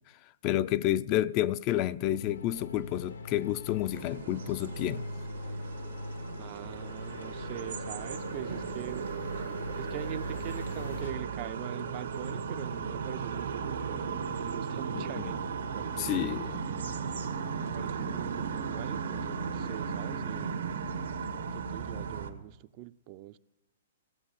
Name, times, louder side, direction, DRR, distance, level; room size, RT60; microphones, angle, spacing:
voice 1, 0.4-5.1 14.9-15.0 16.0-16.6, left 13 dB, 35° left, 0.4 m, -30 dB
sound 1, 2.0-11.2, left 2 dB, 90° left, 1.1 m, -42 dB
sound 2, 3.9-22.3, right 6 dB, 85° right, 1.6 m, -36 dB
voice 2, 6.4-9.1 9.8-16.6 17.6-20.7 21.5-23.4, right 15 dB, 40° right, 0.4 m, -43 dB
15.5 x 7.9 x 7.2 m
hypercardioid pair, 130°, 0 cm